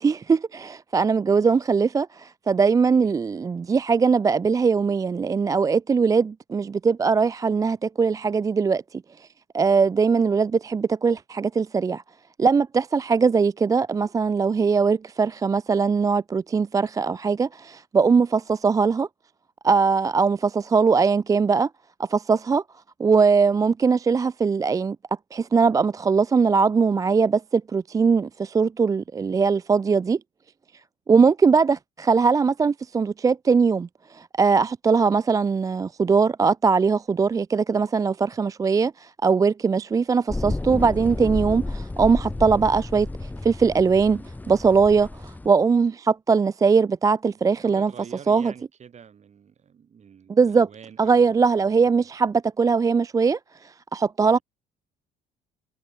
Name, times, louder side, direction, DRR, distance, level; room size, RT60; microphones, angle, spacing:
voice 1, 0.0-9.3 9.5-12.0 12.4-19.1 19.6-21.7 22.0-22.6 23.0-25.0 25.3-30.2 31.1-47.9 48.3-48.5 50.3-50.7 51.0-54.4, right 5 dB, 20° right, 0.3 m, -21 dB
voice 2, 2.8-3.2 47.5-51.4 51.7-51.8 54.3-54.4, right 7 dB, 40° right, 6.8 m, -47 dB
sound 1, 40.3-45.5, left 2 dB, 10° left, 1.0 m, -31 dB
cardioid pair, 110°, 17 cm